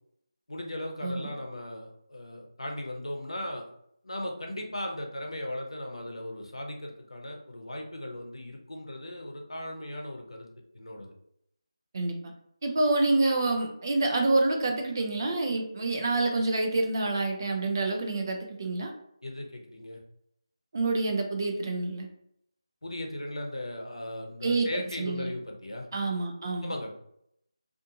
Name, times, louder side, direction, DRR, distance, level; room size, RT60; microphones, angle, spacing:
voice 1, 0.5-3.7 4.0-10.5 10.7-11.1 19.2-20.0 22.8-25.9 26.6-26.9, left 1 dB, 85° left, 1 dB, 0.7 m, -37 dB
voice 2, 11.9-12.3 12.6-18.9 20.7-22.1 24.4-24.7 25.0-25.3 25.9-26.7, right 2 dB, 40° right, 3 dB, 0.5 m, -27 dB
2.5 x 2.4 x 2.7 m, 0.74 s
figure-of-eight pair, 165°, 3 cm